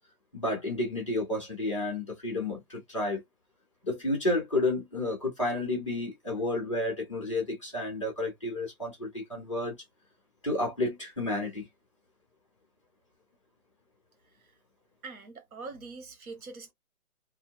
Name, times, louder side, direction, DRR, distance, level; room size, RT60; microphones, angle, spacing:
voice 1, 0.3-3.2 3.9-9.7 10.4-11.7, left 2 dB, 20° left, 0.7 m, -31 dB
voice 2, 15.0-16.7, right 4 dB, 80° right, 1.2 m, -43 dB
2.6 x 2.1 x 2.3 m
hypercardioid pair, 175°, 43 cm